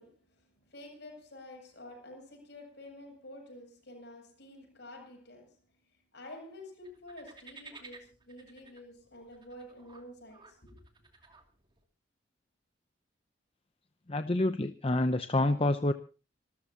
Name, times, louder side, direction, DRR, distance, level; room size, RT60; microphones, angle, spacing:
voice 1, 0.0-10.8, left 1 dB, 60° left, 7.7 m, -50 dB
sound 1, 6.8-11.8, right 4 dB, 25° right, 2.6 m, -55 dB
voice 2, 14.1-15.9, left 2 dB, 30° left, 0.7 m, -27 dB
26.5 x 13.5 x 2.9 m
head